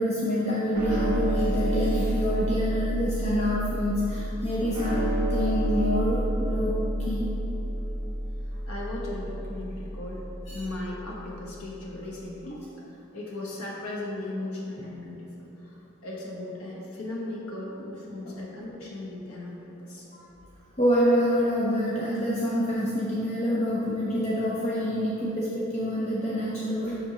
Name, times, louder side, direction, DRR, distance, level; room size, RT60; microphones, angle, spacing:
voice 1, 0.0-7.3 10.5-10.6 20.1-20.3 20.8-27.0, equal, 30° left, -6 dB, 0.6 m, -27 dB
sound 1, 0.7-11.2, equal, 20° right, 1.2 m, -29 dB
voice 2, 8.5-12.6 12.9-15.3 15.6-20.1, left 2 dB, 75° left, -4 dB, 1.1 m, -37 dB
6.9 x 6.2 x 2.9 m, 2.9 s
head